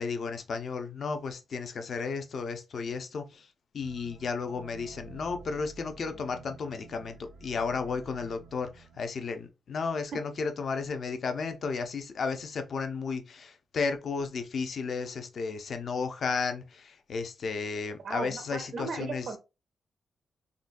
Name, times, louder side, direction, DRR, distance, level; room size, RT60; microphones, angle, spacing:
voice 1, 0.0-3.5 3.7-19.3, left 5 dB, 55° left, 0.6 m, -33 dB
sound 1, 3.8-9.1, right 5 dB, 90° right, 0.7 m, -50 dB
voice 2, 18.0-19.4, right 4 dB, 55° right, 0.4 m, -36 dB
3.8 x 2.2 x 2.5 m
wide cardioid pair, 140°, 0 cm